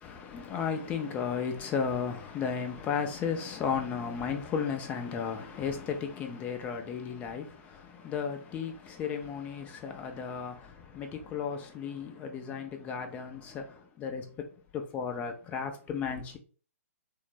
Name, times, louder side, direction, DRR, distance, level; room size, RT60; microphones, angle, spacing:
voice 1, 0.0-14.3 14.7-16.4, left 6 dB, 15° left, 0.4 m, -34 dB
3.4 x 2.1 x 3.1 m
figure-of-eight pair, 125°, 8 cm